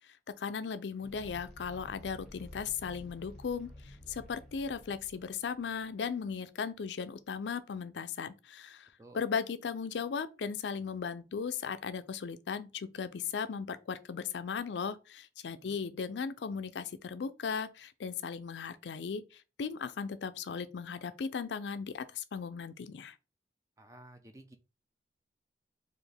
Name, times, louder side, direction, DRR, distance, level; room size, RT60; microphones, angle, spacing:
voice 1, 0.4-23.1, left 6 dB, 85° left, 0.4 m, -37 dB
sound 1, 1.0-6.2, left 1 dB, 5° left, 1.2 m, -52 dB
voice 2, 23.8-24.6, right 1 dB, 20° right, 0.5 m, -53 dB
4.3 x 2.5 x 3.4 m
head